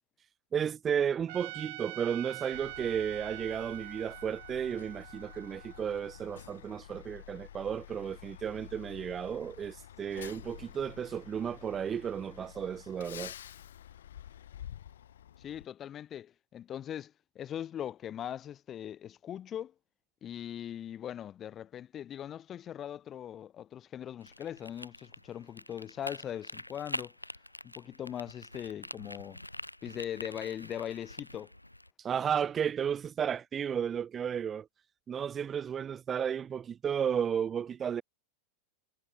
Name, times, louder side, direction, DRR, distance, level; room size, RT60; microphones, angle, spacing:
voice 1, 0.5-13.3 32.0-34.7 35.1-38.0, right 8 dB, 25° right, 0.8 m, -33 dB
Trumpet, 1.3-6.5, right 22 dB, 50° right, 1.9 m, -45 dB
Truck, 2.5-15.6, left 10 dB, 60° left, 3.2 m, -49 dB
voice 2, 15.4-19.7 20.2-27.1 27.6-29.4 29.8-31.5, left 10 dB, 25° left, 1.9 m, -40 dB
sound 1, 24.2-31.9, left 1 dB, 85° left, 0.5 m, -45 dB
figure-of-eight pair, 90°, 0 cm